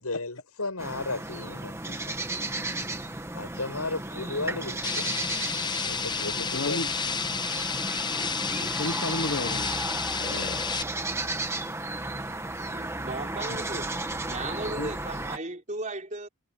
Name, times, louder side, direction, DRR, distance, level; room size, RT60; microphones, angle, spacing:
voice 1, 0.0-2.2 3.3-5.2 5.8-6.8 10.2-10.7, left 3 dB, 85° left, 6.8 m, -35 dB
sound 1, 0.8-15.4, right 2 dB, 10° right, 1.6 m, -34 dB
sound 2, 4.8-10.8, left 6 dB, 20° left, 0.7 m, -31 dB
voice 2, 6.5-6.9 8.6-9.8 13.5-13.6 14.6-14.9, left 2 dB, 55° left, 1.3 m, -33 dB
voice 3, 12.6-13.9 14.3-16.3, right 2 dB, 35° right, 4.7 m, -36 dB
head